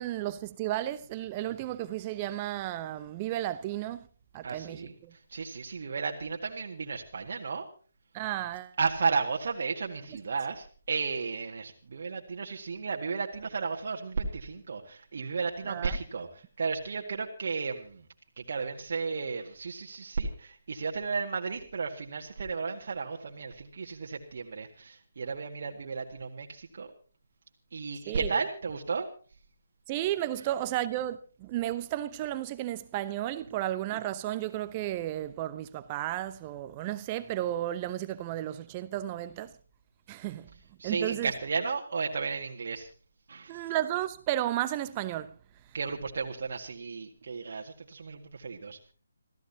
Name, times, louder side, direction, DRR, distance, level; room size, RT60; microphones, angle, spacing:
voice 1, 0.0-4.1 4.3-5.1 8.1-8.8 15.7-16.0 28.1-28.4 29.9-39.5 40.1-40.5 40.8-41.3 43.5-45.3, right 13 dB, 25° right, 0.8 m, -33 dB
voice 2, 4.4-7.7 8.8-18.1 18.4-26.9 27.7-29.1 40.8-42.9 43.3-43.6 45.7-48.8, right 4 dB, 50° right, 2.0 m, -34 dB
27.5 x 15.5 x 2.9 m
figure-of-eight pair, 145°, 0 cm